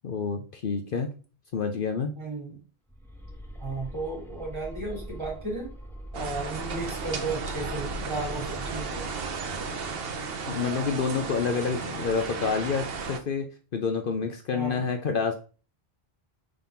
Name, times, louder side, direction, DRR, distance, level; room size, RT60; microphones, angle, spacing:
voice 1, 0.0-1.1 1.5-2.1 10.5-13.5 13.7-15.3, left 5 dB, 60° left, 5 dB, 0.9 m, -28 dB
voice 2, 2.2-2.6 3.6-5.7 6.1-9.0 14.5-14.9, right 3 dB, 25° right, -2 dB, 3.0 m, -34 dB
sound 1, 2.9-10.1, equal, ahead, 1.1 m, -42 dB
sound 2, 6.1-13.2, right 4 dB, 65° right, 1.0 m, -34 dB
5.5 x 3.8 x 5.7 m, 0.37 s
omnidirectional pair, 1.1 m